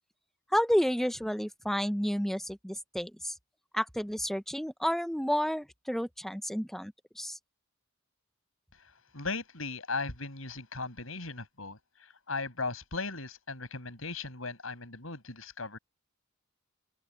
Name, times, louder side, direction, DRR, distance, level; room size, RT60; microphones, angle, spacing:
voice 1, 0.5-3.3 3.7-7.4, equal, ahead, 0.9 m, -31 dB
voice 2, 9.1-11.8 12.3-15.8, left 3 dB, 80° left, 6.4 m, -37 dB
open air
head